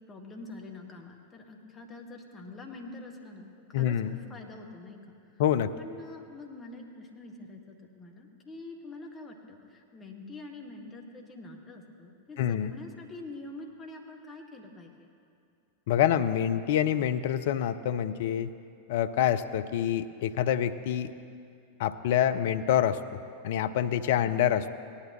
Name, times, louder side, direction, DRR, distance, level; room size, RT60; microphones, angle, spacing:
voice 1, 0.1-4.0 4.3-5.1 5.8-15.1, left 2 dB, 20° left, 1 dB, 1.6 m, -45 dB
voice 2, 3.7-4.2 5.4-5.7 12.4-12.7 15.9-18.5 18.9-21.1 21.8-23.0 23.4-24.7, left 10 dB, 55° left, 11 dB, 0.4 m, -26 dB
18.0 x 11.0 x 3.1 m, 2.4 s
figure-of-eight pair, 90°, 0 cm